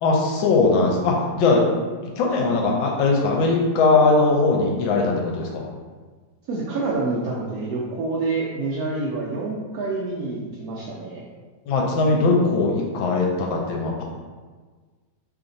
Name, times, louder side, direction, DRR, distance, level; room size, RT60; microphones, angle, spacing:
voice 1, 0.0-1.6 2.1-5.7 11.7-14.0, left 3 dB, 85° left, -1 dB, 1.5 m, -20 dB
voice 2, 6.5-11.3, right 3 dB, 80° right, -5 dB, 0.8 m, -27 dB
3.2 x 2.5 x 3.9 m, 1.4 s
omnidirectional pair, 2.1 m